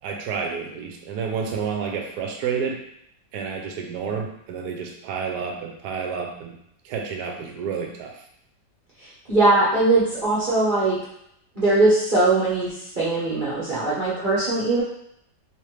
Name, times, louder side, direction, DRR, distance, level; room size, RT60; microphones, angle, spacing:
voice 1, 0.0-2.8 3.3-6.5 6.8-8.2, right 6 dB, 70° right, 2 dB, 1.1 m, -30 dB
voice 2, 9.3-11.0 11.5-14.8, right 2 dB, 35° right, -10 dB, 0.8 m, -20 dB
3.3 x 3.2 x 3.2 m, 0.73 s
omnidirectional pair, 2.0 m